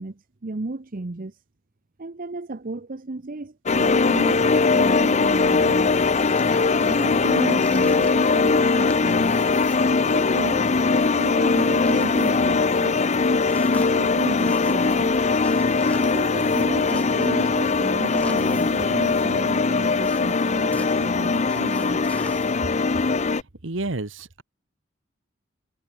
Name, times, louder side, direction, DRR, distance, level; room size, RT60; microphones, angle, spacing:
voice 1, 0.0-1.4 2.0-4.4 4.7-5.9 6.8-9.4 10.0-10.7 11.2-13.0 13.7-15.2 16.0-22.0, right 2 dB, 45° right, 0.8 m, -34 dB
sound 1, 3.7-23.4, left 4 dB, 35° left, 0.7 m, -21 dB
sound 2, 5.8-22.6, left 1 dB, 5° left, 6.4 m, -45 dB
voice 2, 23.6-24.4, right 2 dB, 70° right, 1.6 m, -30 dB
head